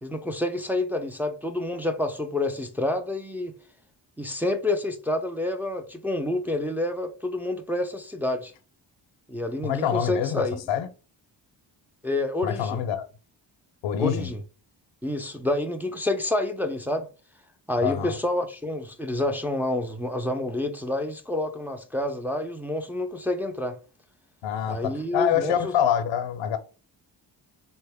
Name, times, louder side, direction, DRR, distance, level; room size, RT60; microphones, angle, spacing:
voice 1, 0.0-3.6 4.2-8.5 9.3-10.6 12.0-12.8 14.0-14.4 15.0-17.1 17.7-23.8 24.7-25.7, left 1 dB, 5° right, 0.4 m, -28 dB
voice 2, 9.6-10.9 12.4-13.0 13.8-14.3 17.8-18.1 24.4-26.6, left 9 dB, 80° left, 0.6 m, -26 dB
3.9 x 2.1 x 3.4 m
cardioid pair, 70°, 44 cm